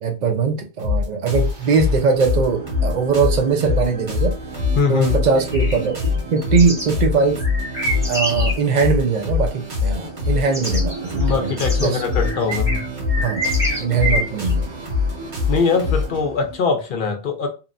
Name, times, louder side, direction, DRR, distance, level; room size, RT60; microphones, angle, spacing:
voice 1, 0.0-4.3 4.9-7.4 8.1-11.5 11.8-12.0 13.2-13.5 13.8-14.7, right 5 dB, 55° right, 0.5 m, -21 dB
sound 1, 0.8-16.2, left 5 dB, 85° right, 1.4 m, -23 dB
sound 2, 1.4-16.6, right 4 dB, 25° right, 1.1 m, -35 dB
voice 2, 4.8-5.1 11.2-12.8 14.0-14.3 15.5-17.5, left 5 dB, 55° left, 0.7 m, -22 dB
sound 3, 5.4-6.9 7.4-8.6 10.2-10.3 10.5-14.5, equal, 5° right, 0.8 m, -27 dB
2.8 x 2.1 x 2.4 m
omnidirectional pair, 1.1 m